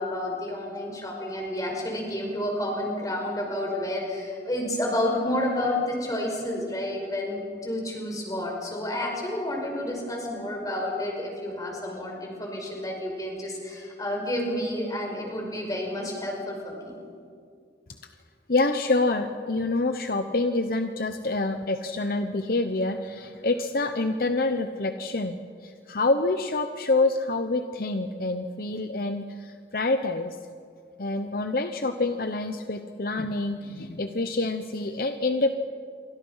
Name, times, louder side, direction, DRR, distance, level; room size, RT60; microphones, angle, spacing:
voice 1, 0.0-17.0, left 1 dB, 20° left, 0 dB, 5.5 m, -30 dB
voice 2, 18.5-25.4 25.6-30.3 31.0-35.5, left 2 dB, 55° left, 7 dB, 0.9 m, -27 dB
28.5 x 24.5 x 5.7 m, 2.2 s
head